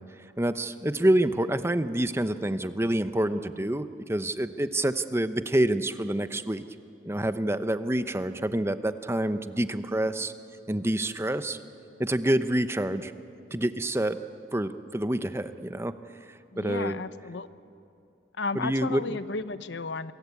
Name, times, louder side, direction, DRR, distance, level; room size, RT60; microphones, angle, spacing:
voice 1, 0.4-6.6 7.0-10.3 10.7-11.6 12.0-13.1 13.5-14.2 14.5-15.9 16.6-17.0 18.5-19.2, right 1 dB, 15° right, 11 dB, 0.8 m, -27 dB
voice 2, 16.5-17.5 18.4-20.1, left 3 dB, 70° left, 14 dB, 0.8 m, -33 dB
28.0 x 23.0 x 8.4 m, 2.6 s
head